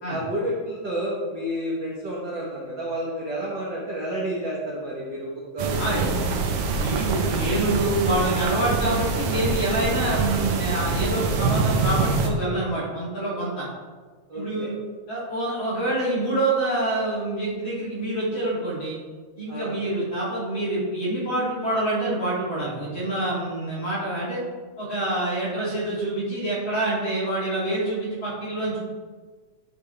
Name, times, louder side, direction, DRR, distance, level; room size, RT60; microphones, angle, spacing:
voice 1, 0.1-6.1 14.3-14.7 19.5-19.7, equal, 55° right, -5 dB, 1.3 m, -30 dB
sound 1, 5.6-12.3, right 4 dB, 80° right, 1.3 m, -25 dB
voice 2, 5.8-13.7 14.3-14.8 15.1-19.0 19.3-24.4 24.8-28.8, right 1 dB, 40° left, -8 dB, 3.1 m, -26 dB
10.5 x 5.4 x 3.3 m, 1.4 s
omnidirectional pair, 3.6 m